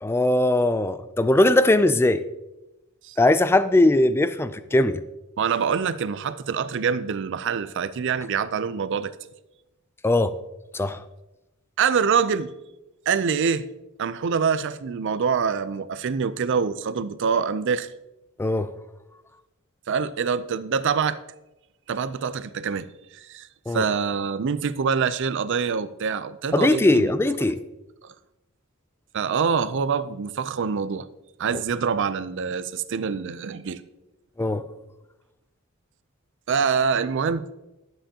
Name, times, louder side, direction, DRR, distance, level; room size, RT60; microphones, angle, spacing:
voice 1, 0.0-2.2 3.2-5.0 10.0-10.3 10.7-11.0 18.4-18.7 23.7-23.8 26.5-27.6 34.4-34.6, left 1 dB, 10° left, 13 dB, 0.3 m, -20 dB
voice 2, 5.4-9.1 11.8-12.5 13.1-13.7 14.0-17.9 19.9-21.2 21.9-27.1 28.0-28.1 29.1-31.1 31.4-33.8 36.5-37.5, right 6 dB, 60° right, 14 dB, 0.4 m, -25 dB
11.5 x 7.6 x 2.8 m, 0.98 s
head